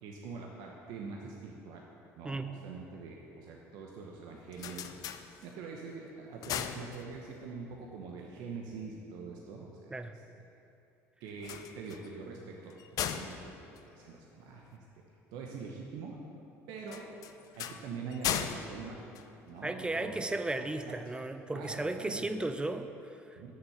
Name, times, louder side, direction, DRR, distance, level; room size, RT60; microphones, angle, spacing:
voice 1, 0.0-1.9 2.1-4.9 5.4-9.9 11.2-12.7 13.0-14.8 15.3-16.2 16.7-17.1 17.6-19.0 19.4-20.2 20.5-21.0 21.5-22.2 23.4-23.5, right 4 dB, 70° right, 0 dB, 0.9 m, -44 dB
sound 1, 4.3-5.8 6.2-7.5 11.3-14.8 16.9-19.9, left 9 dB, 60° left, 0.5 m, -39 dB
voice 2, 19.6-23.5, right 2 dB, 15° right, 9 dB, 0.5 m, -35 dB
7.0 x 6.4 x 7.1 m, 2.8 s
hypercardioid pair, 70°, 7 cm